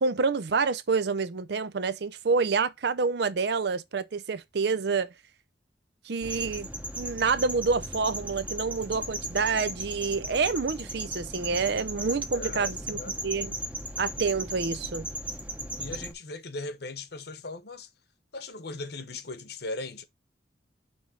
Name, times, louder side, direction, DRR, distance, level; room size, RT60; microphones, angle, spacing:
voice 1, 0.0-5.1 6.1-6.7 7.0-13.0 13.2-13.5 14.0-15.1, right 4 dB, 60° right, 0.5 m, -28 dB
sound 1, 6.2-16.1, right 1 dB, 5° right, 0.8 m, -36 dB
voice 2, 12.3-13.1 15.8-17.9 18.3-20.0, left 2 dB, 60° left, 1.0 m, -38 dB
6.1 x 3.4 x 4.6 m
head